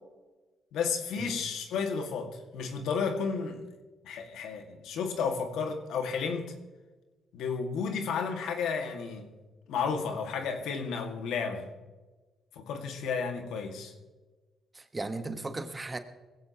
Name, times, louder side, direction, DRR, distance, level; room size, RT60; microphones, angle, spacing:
voice 1, 0.7-3.6 4.0-6.5 7.3-9.3 9.7-11.7 12.6-13.9, left 5 dB, 85° left, 4 dB, 2.0 m, -32 dB
voice 2, 14.7-16.0, right 2 dB, 20° right, 8 dB, 1.3 m, -36 dB
20.0 x 16.0 x 3.0 m, 1.2 s
cardioid pair, 90°, 0 cm